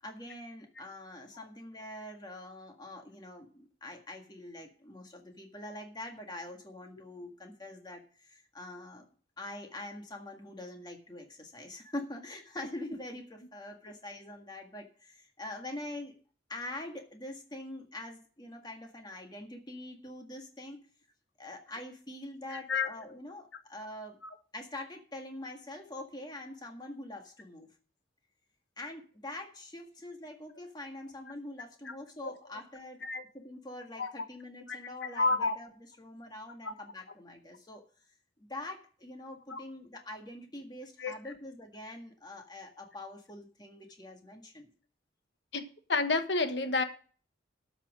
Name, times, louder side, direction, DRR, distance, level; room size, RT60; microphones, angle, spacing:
voice 1, 0.0-9.0 9.4-16.1 16.5-20.8 21.4-24.2 24.5-27.7 28.8-33.0 33.3-37.8 38.4-44.7, left 1 dB, 20° left, 1.8 m, -44 dB
voice 2, 35.2-35.5 39.5-39.6 41.0-41.1 45.5-45.6 45.9-46.8, left 3 dB, 65° left, 1.2 m, -29 dB
12.5 x 6.1 x 6.2 m
head